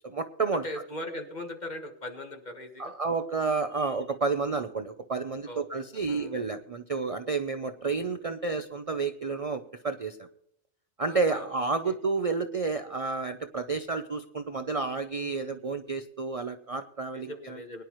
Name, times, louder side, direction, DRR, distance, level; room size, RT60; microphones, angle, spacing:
voice 1, 0.0-0.6 2.8-10.3 11.0-17.6, right 4 dB, 40° right, 8 dB, 0.6 m, -30 dB
voice 2, 0.6-2.9 5.5-6.4 11.1-11.6 11.8-11.9 15.1-15.6 17.1-17.8, left 1 dB, 40° left, 4 dB, 1.6 m, -40 dB
22.0 x 10.5 x 3.1 m, 0.68 s
omnidirectional pair, 1.2 m